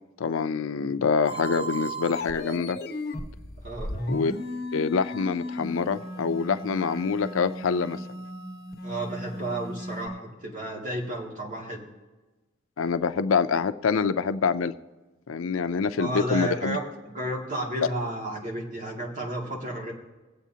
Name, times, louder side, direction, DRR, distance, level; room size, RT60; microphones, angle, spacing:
voice 1, 0.2-2.8 4.1-4.3 4.7-8.0 12.8-14.7 15.3-16.8, left 5 dB, 85° left, 11 dB, 0.5 m, -26 dB
sound 1, 1.2-10.1, equal, 50° left, 1.2 m, -36 dB
voice 2, 8.8-11.8 16.0-19.9, right 1 dB, 40° right, -1 dB, 2.3 m, -32 dB
24.0 x 8.2 x 2.8 m, 1.2 s
head